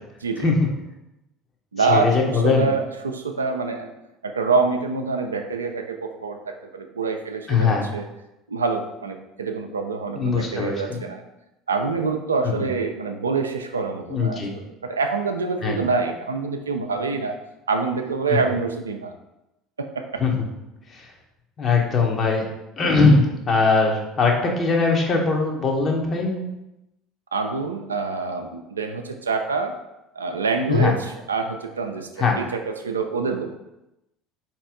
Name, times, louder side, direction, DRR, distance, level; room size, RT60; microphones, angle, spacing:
voice 1, 0.2-0.5 1.7-3.9 4.2-8.1 8.5-11.2 11.7-17.4 17.7-19.1 19.8-20.2 27.3-29.8 30.1-33.6, right 4 dB, 80° right, 5 dB, 0.3 m, -26 dB
voice 2, 1.8-2.7 7.5-7.9 10.2-11.0 12.4-12.7 14.1-14.5 15.6-15.8 18.3-18.4 20.2-20.4 20.9-21.1 21.6-22.4 22.8-26.5 30.7-30.9 32.2-32.4, left 4 dB, 35° left, 0 dB, 1.0 m, -20 dB
4.1 x 2.9 x 3.7 m, 0.91 s
figure-of-eight pair, 65°, 0 cm